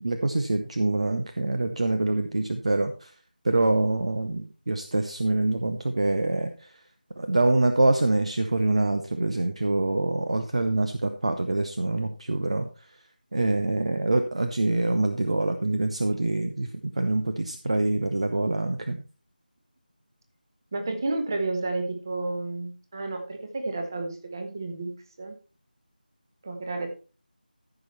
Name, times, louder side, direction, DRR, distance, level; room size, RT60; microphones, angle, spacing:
voice 1, 0.0-3.1 3.4-6.7 7.2-13.0 13.3-19.0, right 2 dB, 40° right, 7 dB, 0.8 m, -25 dB
voice 2, 20.7-25.4 26.4-26.9, right 2 dB, 25° right, 6 dB, 1.4 m, -31 dB
14.5 x 6.0 x 4.4 m, 0.35 s
figure-of-eight pair, 165°, 5 cm